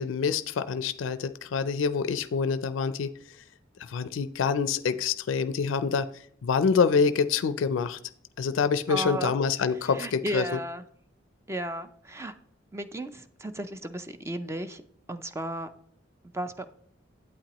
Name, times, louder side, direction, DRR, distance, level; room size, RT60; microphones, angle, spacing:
voice 1, 0.0-3.1 3.9-6.1 6.4-8.0 8.4-10.4, left 5 dB, 90° left, 13 dB, 0.4 m, -26 dB
voice 2, 8.9-9.3 9.8-10.8 11.5-12.3 12.7-14.8 15.1-15.7 16.3-16.7, right 1 dB, 15° right, 10 dB, 0.4 m, -34 dB
8.8 x 8.3 x 2.9 m, 0.65 s
head